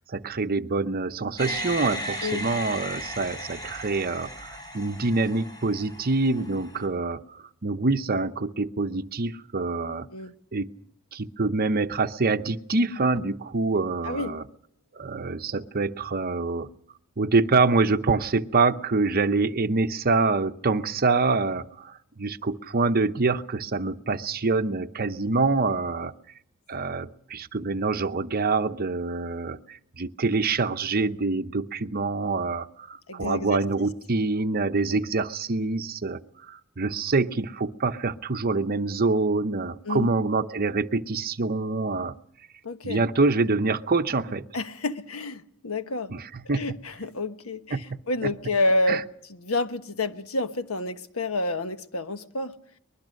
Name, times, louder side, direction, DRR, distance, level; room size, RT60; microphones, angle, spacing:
voice 1, 0.0-10.1 10.5-10.7 11.1-14.4 14.9-16.7 17.2-26.1 26.7-36.2 36.5-42.1 42.8-44.4 46.1-46.8 47.7-48.3 48.9-49.0, right 3 dB, 45° right, 0.8 m, -26 dB
sound 1, 1.4-6.8, equal, 20° left, 7.9 m, -36 dB
voice 2, 14.0-14.4 33.1-33.6 34.9-35.0 39.8-40.1 42.6-43.0 44.5-46.1 46.4-49.0 49.3-52.5, left 2 dB, 75° left, 1.3 m, -29 dB
23.5 x 21.0 x 6.4 m
head